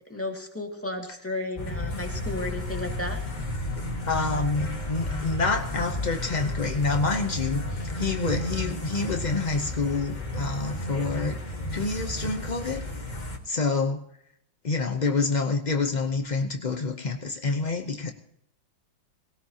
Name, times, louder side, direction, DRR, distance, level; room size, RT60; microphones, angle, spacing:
voice 1, 0.1-3.2, left 2 dB, 5° left, 0 dB, 2.1 m, -33 dB
sound 1, 1.5-13.4, left 1 dB, 25° left, 1.5 m, -32 dB
voice 2, 3.8-11.4 11.7-12.8 13.4-14.0 14.6-18.1, left 3 dB, 55° left, 4 dB, 0.4 m, -27 dB
19.0 x 18.0 x 2.9 m, 0.73 s
omnidirectional pair, 2.1 m